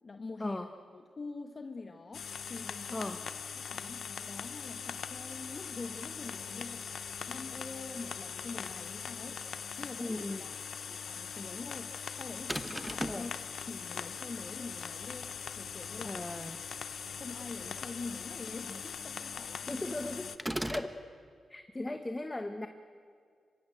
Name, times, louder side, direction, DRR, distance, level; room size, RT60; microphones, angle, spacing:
voice 1, 0.0-0.7 0.9-3.1 3.4-9.4 9.8-10.5 10.9-13.3 13.7-16.2 17.2-19.8, left 3 dB, 45° left, 6 dB, 1.2 m, -45 dB
sound 1, 2.1-20.4, left 7 dB, 70° left, 0.9 m, -41 dB
voice 2, 10.0-10.4 13.1-13.3 16.0-16.6 19.7-20.3 20.7-20.9 21.5-22.7, left 2 dB, 20° left, 7 dB, 1.3 m, -37 dB
sound 2, 12.5-13.3 20.4-21.0, right 1 dB, 5° right, 1.1 m, -36 dB
26.5 x 15.5 x 9.1 m, 2.1 s
cardioid pair, 70°, 0 cm